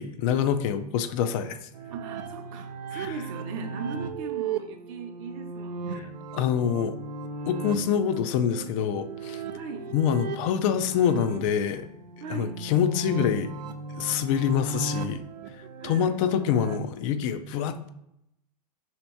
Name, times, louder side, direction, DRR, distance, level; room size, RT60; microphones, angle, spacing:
voice 1, 0.0-1.6 2.9-3.1 6.3-6.9 7.4-9.4 9.9-11.9 12.3-13.5 14.0-15.2 15.8-17.9, left 8 dB, 50° left, 10 dB, 0.4 m, -26 dB
sound 1, 1.7-16.8, right 4 dB, 85° right, 0.4 m, -36 dB
voice 2, 1.9-6.1 9.5-9.9 12.2-12.6 15.6-16.2, right 5 dB, 55° right, 5 dB, 0.7 m, -39 dB
3.4 x 2.9 x 4.4 m, 0.80 s
hypercardioid pair, 120°, 21 cm